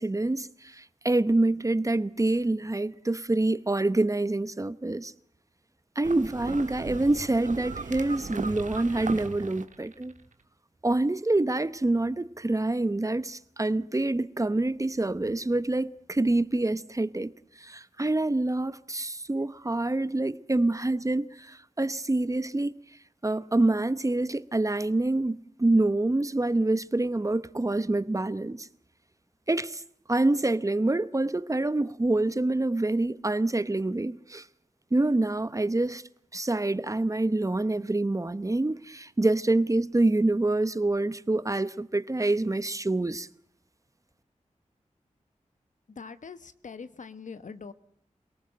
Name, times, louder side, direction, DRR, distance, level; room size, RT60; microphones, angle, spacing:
voice 1, 0.0-5.1 6.0-10.1 10.8-17.3 17.6-22.7 23.2-28.7 29.5-29.8 30.1-34.5 34.9-36.0 36.3-43.3, right 2 dB, 25° right, 1.0 m, -26 dB
sound 1, 6.0-10.2, right 4 dB, 80° right, 1.6 m, -37 dB
voice 2, 45.9-47.7, left 5 dB, 75° left, 1.3 m, -43 dB
28.0 x 18.0 x 7.7 m
wide cardioid pair, 75°, 13 cm